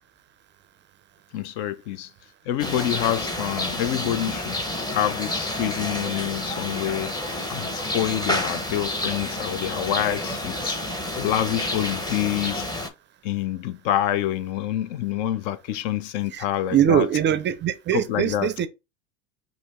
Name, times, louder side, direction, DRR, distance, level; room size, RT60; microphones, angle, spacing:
voice 1, 1.3-2.1 2.5-4.6 4.9-7.1 7.5-10.8 11.2-12.7 13.2-17.1 17.9-18.5, left 12 dB, 60° left, 0.5 m, -27 dB
sound 1, 2.6-12.9, left 1 dB, 10° left, 0.7 m, -29 dB
voice 2, 16.7-18.7, right 10 dB, 30° right, 0.4 m, -22 dB
4.9 x 2.0 x 3.5 m
hypercardioid pair, 90°, 39 cm